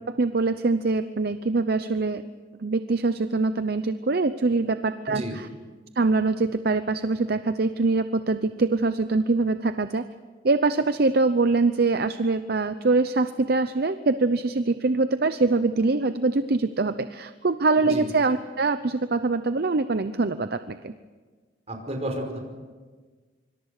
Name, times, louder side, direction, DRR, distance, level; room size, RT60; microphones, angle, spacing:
voice 1, 0.1-2.2 2.6-5.5 6.0-10.1 10.4-20.9, right 3 dB, 60° right, 11 dB, 0.7 m, -24 dB
voice 2, 21.7-22.4, right 1 dB, 35° right, 3 dB, 5.2 m, -31 dB
25.0 x 25.0 x 6.6 m, 1.4 s
head